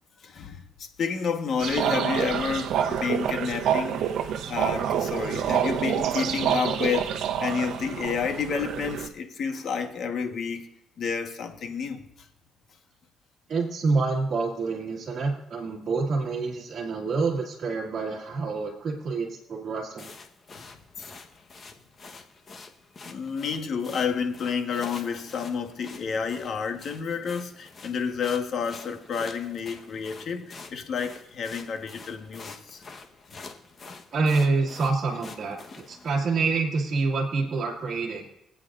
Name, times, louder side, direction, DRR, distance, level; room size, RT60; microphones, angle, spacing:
voice 1, 0.2-4.1 4.5-10.7 11.0-12.1 20.6-20.7 21.0-21.1 23.0-32.8 33.3-33.4, left 6 dB, 60° left, 1.3 m, -30 dB
sound 1, 1.6-9.1, right 9 dB, 80° right, 0.8 m, -27 dB
voice 2, 13.5-20.1 34.1-38.3, right 4 dB, 45° right, 1.9 m, -27 dB
sound 2, 20.0-36.2, left 4 dB, 40° left, 1.1 m, -46 dB
25.0 x 8.7 x 2.6 m
cardioid pair, 110°, 0 cm